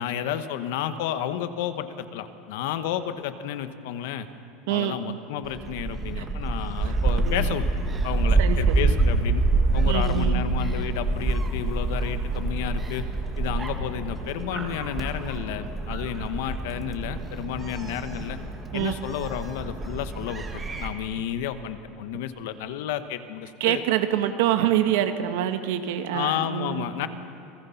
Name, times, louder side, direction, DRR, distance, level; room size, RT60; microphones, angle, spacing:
voice 1, 0.0-4.3 4.7-7.6 8.0-9.4 9.7-13.0 13.4-18.4 18.7-23.8 26.1-27.1, left 10 dB, 70° left, 10 dB, 1.2 m, -31 dB
voice 2, 4.7-5.2 6.2-6.3 6.8-7.5 8.4-8.9 9.9-10.6 18.7-19.0 23.6-26.9, right 11 dB, 75° right, 8 dB, 1.3 m, -26 dB
Gull seagull, 5.4-20.9, right 3 dB, 15° right, 1.7 m, -26 dB
29.0 x 19.0 x 5.8 m, 2.6 s
cardioid pair, 175°, 0 cm